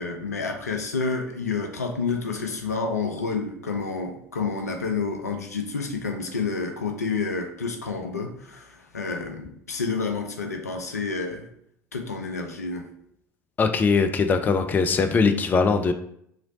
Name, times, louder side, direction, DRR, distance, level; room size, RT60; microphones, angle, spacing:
voice 1, 0.0-11.5 11.9-12.8, left 4 dB, 85° left, 4 dB, 0.4 m, -29 dB
voice 2, 13.6-15.9, left 5 dB, 20° left, 7 dB, 0.3 m, -21 dB
3.0 x 2.5 x 3.9 m, 0.70 s
figure-of-eight pair, 65°, 8 cm